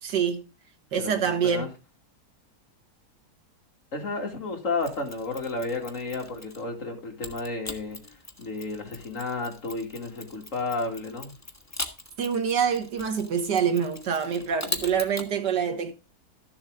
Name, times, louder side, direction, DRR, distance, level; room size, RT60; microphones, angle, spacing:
voice 1, 0.0-0.4 0.9-1.7 12.2-15.9, right 7 dB, 85° right, 2.0 m, -26 dB
voice 2, 0.9-1.7 3.9-8.0 8.4-11.3, left 3 dB, 50° left, 2.7 m, -32 dB
Mechanisms, 4.8-6.7 7.2-15.3, left 2 dB, 15° left, 0.7 m, -40 dB
12.5 x 7.3 x 3.7 m
omnidirectional pair, 1.8 m